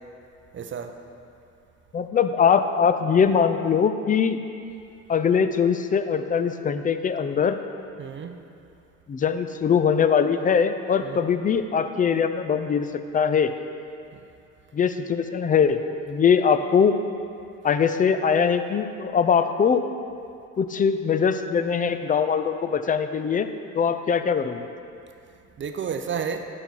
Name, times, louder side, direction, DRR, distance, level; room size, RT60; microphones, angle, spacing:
voice 1, 0.5-0.9 8.0-8.4 11.0-11.2 14.1-14.2 25.6-26.5, right 6 dB, 30° right, 6 dB, 0.6 m, -31 dB
voice 2, 1.9-4.4 5.1-7.6 9.1-12.9 13.1-13.5 14.7-15.8 16.1-16.9 17.6-19.8 20.6-23.5 23.7-24.7, left 6 dB, 20° left, 9 dB, 0.4 m, -22 dB
10.0 x 5.8 x 4.0 m, 2.5 s
hypercardioid pair, 65°, 38 cm